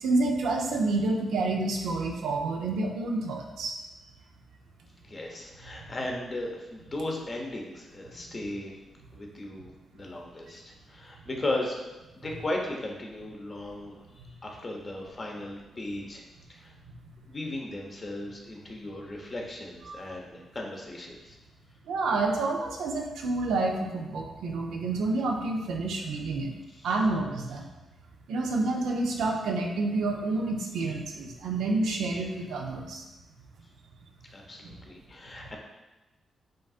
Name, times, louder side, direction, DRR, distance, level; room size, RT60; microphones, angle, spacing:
voice 1, 0.0-3.8 19.9-20.2 21.9-26.5 26.8-27.6 28.3-33.0, right 3 dB, 85° right, 1 dB, 0.6 m, -29 dB
voice 2, 5.0-8.7 9.1-9.7 9.9-10.6 10.9-11.8 12.1-16.2 16.5-16.7 17.3-21.4 26.7-26.9 34.3-35.6, left 1 dB, 40° left, 0 dB, 1.0 m, -36 dB
7.6 x 2.6 x 2.5 m, 1.1 s
supercardioid pair, 55°, 0 cm